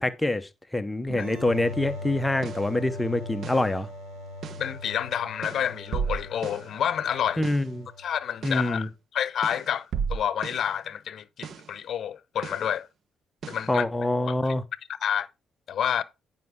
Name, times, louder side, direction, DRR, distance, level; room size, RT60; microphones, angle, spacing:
voice 1, 0.0-3.9 7.4-7.9 8.4-8.9 13.7-14.6, left 2 dB, 10° left, 0.8 m, -26 dB
sound 1, 1.1-8.5, left 1 dB, 85° right, 2.2 m, -40 dB
sound 2, 2.4-2.7 3.4-3.7 4.4-4.7 5.4-6.7 7.4-7.7 8.4-8.7 9.4-10.7 11.4-11.7 12.4-12.7 13.4-13.7, right 6 dB, 60° right, 0.7 m, -34 dB
voice 2, 4.6-7.5 8.0-12.9 13.5-13.8 14.4-14.5 15.0-15.3 15.7-16.0, left 9 dB, 65° left, 0.8 m, -29 dB
9.3 x 5.4 x 3.6 m
cardioid pair, 90°, 0 cm